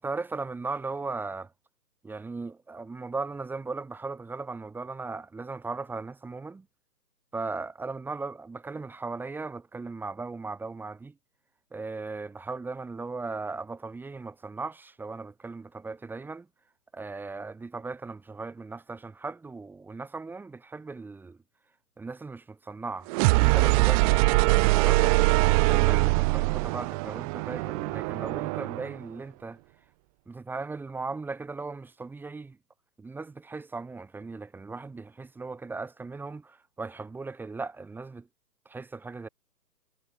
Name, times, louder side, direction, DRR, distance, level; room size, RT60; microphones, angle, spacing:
voice 1, 0.0-1.5 2.0-6.7 7.3-11.1 11.7-16.5 16.9-21.4 22.0-23.1 23.4-29.6 30.3-32.6 33.0-38.3 38.7-39.3, right 3 dB, 5° right, 2.4 m, -37 dB
sound 1, 23.1-28.9, right 28 dB, 20° right, 2.7 m, -23 dB
figure-of-eight pair, 140°, 49 cm